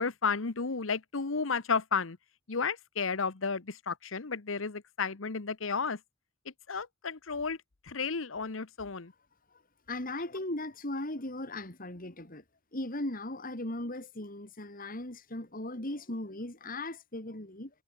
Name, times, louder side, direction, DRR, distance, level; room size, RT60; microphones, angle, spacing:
voice 1, 0.0-2.2 2.5-6.0 6.7-7.6 7.9-9.1, left 5 dB, 90° left, 1.1 m, -32 dB
voice 2, 9.9-12.4 12.7-17.7, left 1 dB, 45° left, 3.7 m, -38 dB
head